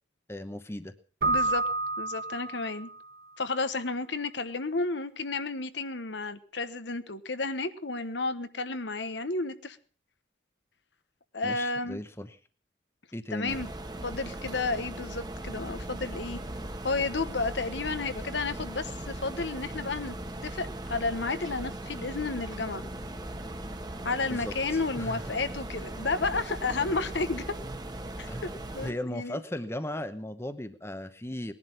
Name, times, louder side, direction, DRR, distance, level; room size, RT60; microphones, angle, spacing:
voice 1, 0.3-0.9 11.4-12.4 13.1-13.6 24.3-25.4 28.2-28.5 28.8-31.5, left 1 dB, 15° left, 11 dB, 0.9 m, -37 dB
Keyboard (musical), 1.2-3.0, right 2 dB, 55° right, 0.8 m, -29 dB
voice 2, 1.3-1.6 2.0-2.9 3.4-9.8 11.3-12.0 13.3-13.7 14.0-16.4 16.8-20.2 20.4-22.9 24.0-27.4 28.2-28.3 28.7-29.4, left 3 dB, 80° left, 11 dB, 1.2 m, -32 dB
sound 1, 13.5-28.9, right 1 dB, 20° right, 1.2 m, -39 dB
19.5 x 11.0 x 5.6 m, 0.41 s
head